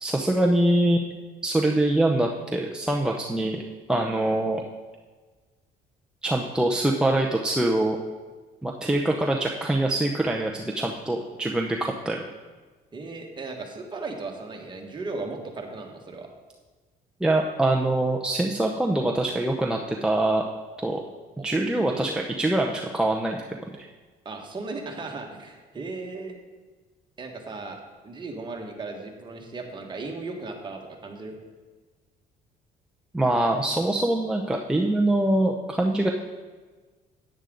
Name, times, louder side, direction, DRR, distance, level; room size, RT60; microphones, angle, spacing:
voice 1, 0.0-1.1 1.4-3.6 3.9-4.6 6.2-8.0 8.6-12.2 17.2-20.4 20.8-21.0 21.4-23.4 23.8-23.9 33.1-36.1, right 1 dB, 5° right, 0 dB, 0.7 m, -24 dB
voice 2, 12.9-16.3 21.4-21.5 21.8-22.2 24.2-26.4 27.2-31.3 33.6-33.7, right 3 dB, 25° right, 1 dB, 1.7 m, -36 dB
9.9 x 9.1 x 3.9 m, 1.4 s
cardioid pair, 110°, 17 cm